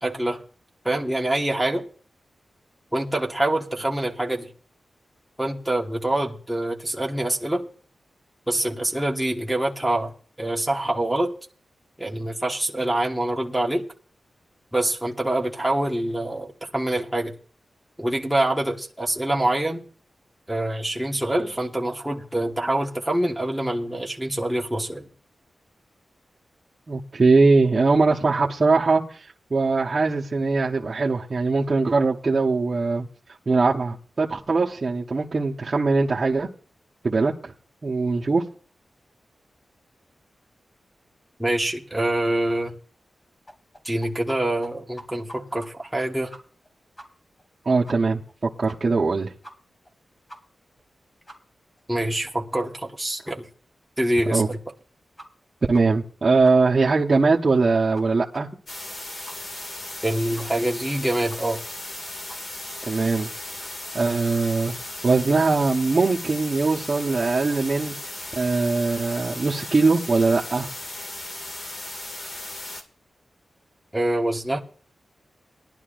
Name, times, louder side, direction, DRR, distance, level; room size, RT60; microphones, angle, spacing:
voice 1, 0.0-0.4 0.8-1.8 2.9-4.5 5.4-7.7 8.5-10.1 10.4-11.3 12.0-13.8 14.7-17.3 18.0-19.8 20.5-25.1 41.4-42.7 43.8-46.3 51.9-53.5 54.0-54.6 60.0-61.6 73.9-74.6, right 1 dB, 5° right, 1.3 m, -25 dB
voice 2, 26.9-33.1 33.5-36.5 37.0-37.5 37.8-38.4 47.7-48.2 48.6-49.3 54.3-54.5 55.7-58.5 62.9-63.3 63.9-64.7 65.0-67.9 68.4-70.7, right 3 dB, 40° right, 1.0 m, -21 dB
sound 1, 43.5-44.4 44.6-44.7 45.0-45.7 46.0-46.1 46.3-46.7 47.0-47.1 47.4-47.5 47.9-48.0 48.3-48.4 48.7-49.0 49.4-49.5 49.9-50.0 50.3-50.4 50.8-50.9 51.3-51.4 51.8-51.9 52.3-52.4 52.7-52.8 53.3-53.4 53.8-53.9 54.3-54.4 54.8-54.9 55.2-55.5 55.7-55.8 56.1-56.2 56.4-56.8 57.1-57.2 57.6-57.7 57.9-58.0 58.3-58.4 58.7-58.8 59.3-59.4 59.7-59.8 60.4-60.5 60.8-60.9 61.3-61.4 61.8-61.9 62.3-62.4, equal, 25° left, 2.5 m, -44 dB
sound 2, 58.7-72.8, left 1 dB, 50° left, 2.0 m, -36 dB
19.5 x 11.5 x 2.5 m
wide cardioid pair, 105°, 0 cm